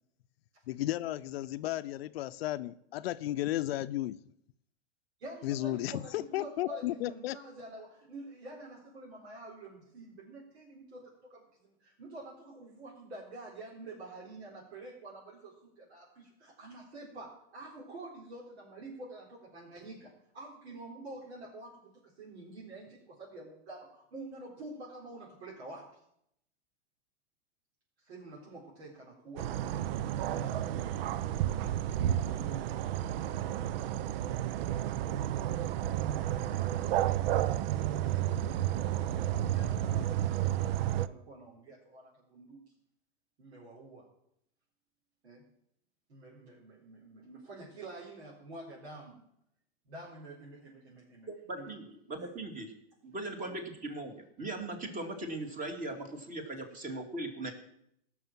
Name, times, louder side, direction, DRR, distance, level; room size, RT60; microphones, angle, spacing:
voice 1, 0.7-4.2 5.4-7.4, left 15 dB, 70° left, 12 dB, 0.6 m, -34 dB
voice 2, 5.2-26.0 28.0-31.3 32.1-32.7 33.0-34.1 35.9-37.4 38.3-42.6 43.4-44.1 45.2-45.5 46.1-49.2 49.8-51.3 51.5-51.8 52.2-52.3 53.4-53.5, right 2 dB, 80° right, -5 dB, 4.3 m, -48 dB
sound 1, 29.4-41.1, right 12 dB, 60° right, 0.6 m, -31 dB
voice 3, 51.3-52.7 53.0-57.5, right 2 dB, 25° right, 5 dB, 2.5 m, -39 dB
17.0 x 6.3 x 7.5 m, 0.75 s
hypercardioid pair, 120°, 32 cm